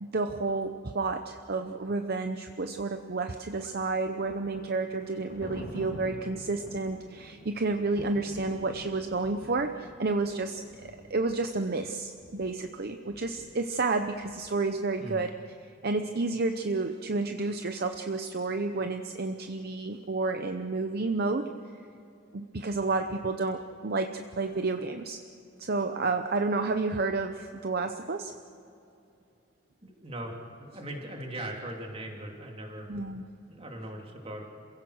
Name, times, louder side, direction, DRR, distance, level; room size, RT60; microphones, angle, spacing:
voice 1, 0.0-15.3 15.6-21.8 22.3-25.2 25.6-28.3 32.9-33.2, right 3 dB, 50° right, 7 dB, 0.8 m, -31 dB
Thunder, 3.2-15.0, left 1 dB, 60° left, 2.5 m, -48 dB
voice 2, 29.8-32.9 33.5-34.4, right 1 dB, 30° right, 0 dB, 3.0 m, -39 dB
27.5 x 16.5 x 6.5 m, 2.8 s
head